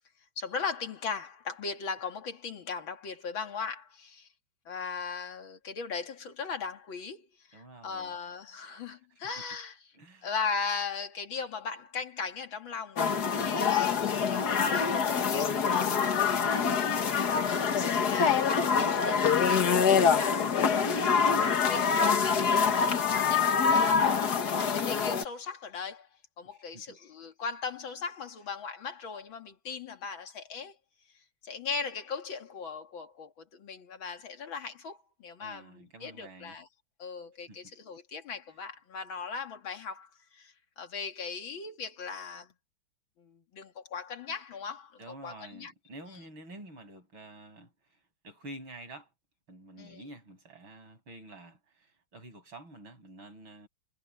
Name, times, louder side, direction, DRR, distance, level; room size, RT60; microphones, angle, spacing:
voice 1, 0.4-4.3 4.7-9.8 10.2-17.0 17.5-21.2 21.5-22.3 22.6-24.1 24.5-26.1 26.4-30.8 31.4-36.7 37.0-42.5 43.2-45.7 49.8-50.0, left 5 dB, 65° left, 2.8 m, -38 dB
voice 2, 7.5-8.1 9.2-9.4 9.9-10.3 26.4-27.0 35.4-36.6 37.5-37.7 45.0-49.1 49.5-53.7, right 1 dB, 70° right, 7.8 m, -49 dB
sound 1, 13.0-25.2, left 6 dB, 50° left, 1.9 m, -25 dB
omnidirectional pair, 2.3 m